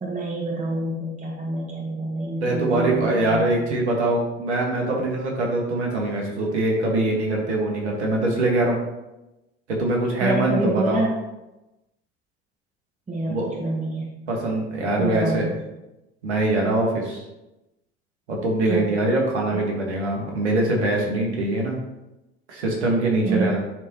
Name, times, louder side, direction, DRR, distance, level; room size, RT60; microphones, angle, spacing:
voice 1, 0.0-3.5 10.2-11.2 13.1-14.1 15.0-15.4 18.7-18.9 19.5-19.6 23.2-23.6, right 2 dB, 20° right, -2 dB, 1.6 m, -27 dB
voice 2, 2.4-8.8 9.7-11.0 13.3-13.5 14.3-15.5 16.2-17.2 18.3-21.8 22.5-23.6, right 2 dB, 80° right, 0 dB, 1.7 m, -23 dB
10.5 x 3.7 x 3.0 m, 0.97 s
hypercardioid pair, 70°, 34 cm